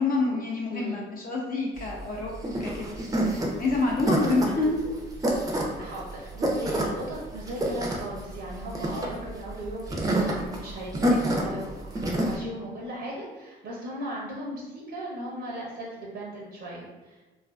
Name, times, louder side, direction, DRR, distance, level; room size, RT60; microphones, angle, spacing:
voice 1, 0.0-2.3 2.6-3.0 3.6-4.8 8.9-9.2, left 3 dB, 45° left, -2 dB, 0.5 m, -27 dB
voice 2, 0.7-1.0 3.6-3.7 4.2-4.7 5.8-11.8 12.0-17.2, right 1 dB, 60° right, -4 dB, 0.6 m, -37 dB
bunny left ear, 1.8-12.4, right 1 dB, 20° right, 0.5 m, -28 dB
2.4 x 2.4 x 2.3 m, 1.1 s
cardioid pair, 90°, 20 cm